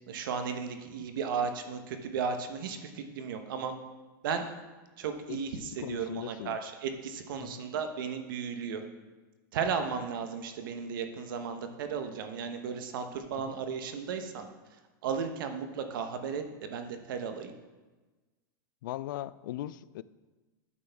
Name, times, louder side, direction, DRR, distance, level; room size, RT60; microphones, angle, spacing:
voice 1, 0.1-3.7 4.2-4.5 5.0-8.8 9.5-14.5 15.0-17.5, right 6 dB, 70° right, 7 dB, 1.1 m, -35 dB
voice 2, 5.8-6.6 7.4-7.6 13.3-13.6 18.8-20.0, left 14 dB, 70° left, 17 dB, 0.4 m, -39 dB
9.4 x 7.7 x 3.5 m, 1.2 s
supercardioid pair, 155°, 11 cm